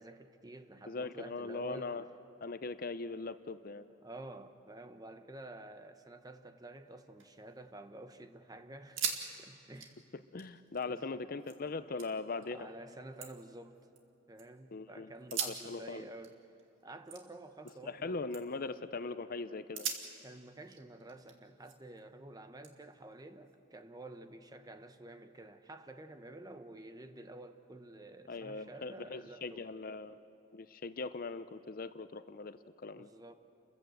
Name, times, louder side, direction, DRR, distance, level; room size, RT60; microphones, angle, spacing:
voice 1, 0.0-2.0 4.0-9.1 9.4-10.0 10.8-11.2 12.5-13.8 14.3-16.4 16.8-18.3 20.2-29.7 33.0-33.4, right 2 dB, 20° right, 8 dB, 0.9 m, -50 dB
voice 2, 0.9-2.0 2.4-3.9 10.3-12.7 14.7-16.1 17.8-19.9 28.3-30.2 30.5-33.1, left 3 dB, 50° left, 12 dB, 0.6 m, -40 dB
sound 1, 6.9-8.0 8.3-8.4 8.8-9.3 9.5-11.6 12.0-12.5 12.9-14.4 15.2-18.0 18.3-18.7 19.2-19.3 19.7-22.0 22.6-23.8, right 7 dB, 80° right, 2.1 m, -43 dB
29.5 x 15.0 x 7.8 m, 2.6 s
head